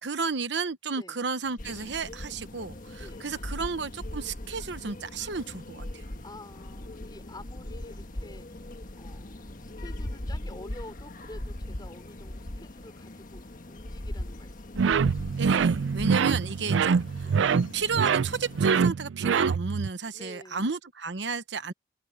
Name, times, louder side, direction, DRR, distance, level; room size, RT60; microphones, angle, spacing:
voice 1, 0.0-6.0 15.4-17.3 17.7-21.7, right 4 dB, 70° right, 1.0 m, -32 dB
voice 2, 0.9-1.2 3.0-3.3 6.2-13.4 13.7-15.1 15.9-16.1 17.2-17.4 20.1-20.7, left 1 dB, 25° left, 4.2 m, -49 dB
sound 1, 1.4-10.0, equal, 5° left, 4.8 m, -58 dB
sound 2, 1.6-18.9, left 1 dB, 45° left, 1.4 m, -40 dB
sound 3, 14.8-19.9, right 6 dB, 85° right, 0.4 m, -25 dB
open air
head